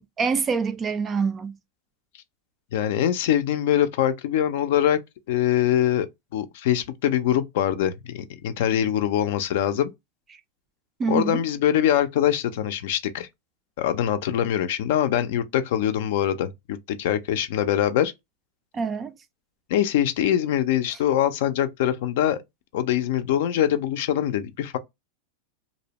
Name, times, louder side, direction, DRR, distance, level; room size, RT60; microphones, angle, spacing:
voice 1, 0.0-1.6 11.0-11.4 18.7-19.1, right 5 dB, 25° right, 0.3 m, -25 dB
voice 2, 2.7-5.0 5.3-6.1 6.3-9.9 11.1-13.3 13.8-18.1 19.7-22.4 22.7-24.8, left 10 dB, 70° left, 0.4 m, -23 dB
2.6 x 2.1 x 2.8 m
hypercardioid pair, 125°, 0 cm